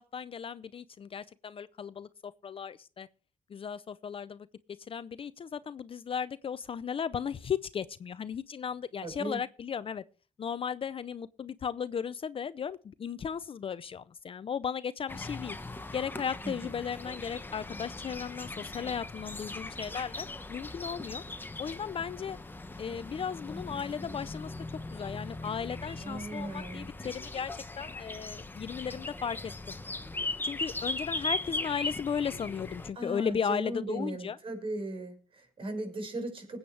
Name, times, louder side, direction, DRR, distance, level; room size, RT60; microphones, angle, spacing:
voice 1, 0.0-3.1 3.5-4.5 4.9-10.0 10.4-15.6 15.9-21.2 21.6-22.4 22.8-24.5 24.9-27.5 27.8-29.8 30.4-34.4, left 7 dB, 40° left, 0.5 m, -36 dB
voice 2, 9.0-9.4 16.4-16.7 26.0-26.9 33.0-36.6, right 1 dB, 40° right, 5.2 m, -37 dB
sound 1, 15.1-32.9, left 2 dB, 15° left, 1.2 m, -39 dB
20.0 x 8.7 x 3.3 m
cardioid pair, 95°, 14 cm